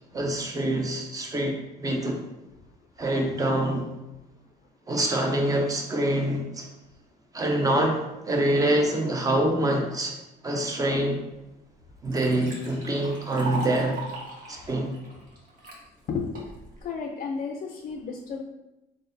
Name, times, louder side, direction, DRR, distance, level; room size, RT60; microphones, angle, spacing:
voice 1, 0.1-1.6 1.8-2.2 3.0-3.9 4.9-6.7 7.3-10.1 10.4-11.2 12.0-14.0 14.5-14.9, right 1 dB, 20° right, 2 dB, 0.7 m, -25 dB
Liquid, 11.3-11.4 11.8-15.8 16.4-16.8, right 2 dB, 55° right, 1.2 m, -38 dB
voice 2, 16.8-18.4, left 5 dB, 50° left, 3 dB, 0.4 m, -32 dB
3.9 x 3.8 x 2.6 m, 0.96 s
cardioid pair, 110°, 17 cm